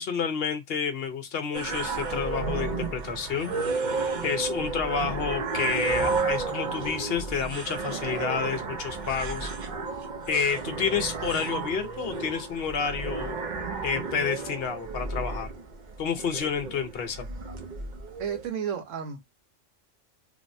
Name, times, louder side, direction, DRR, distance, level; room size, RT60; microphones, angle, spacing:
voice 1, 0.0-3.5 3.9-9.5 10.3-13.4 13.8-15.5 16.0-17.3, left 6 dB, 60° left, 0.8 m, -30 dB
sound 1, 1.5-18.5, right 4 dB, 45° right, 0.7 m, -32 dB
voice 2, 18.2-19.2, right 7 dB, 90° right, 1.2 m, -32 dB
3.3 x 2.0 x 2.5 m
omnidirectional pair, 1.3 m